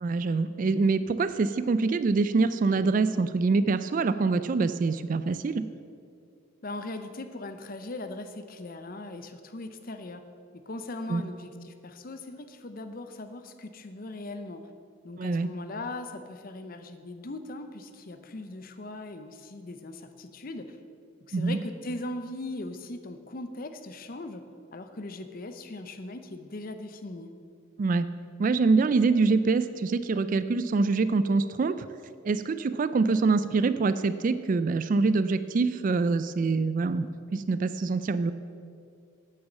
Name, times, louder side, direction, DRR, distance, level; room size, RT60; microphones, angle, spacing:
voice 1, 0.0-5.6 11.1-11.2 15.2-15.5 21.3-21.6 27.8-28.1 28.4-31.8 32.3-38.3, right 4 dB, 40° right, 13 dB, 0.3 m, -25 dB
voice 2, 6.6-10.2 10.7-14.6 15.0-20.8 21.3-24.4 24.7-27.3, left 2 dB, 45° left, 8 dB, 0.6 m, -39 dB
9.0 x 6.4 x 7.3 m, 2.3 s
head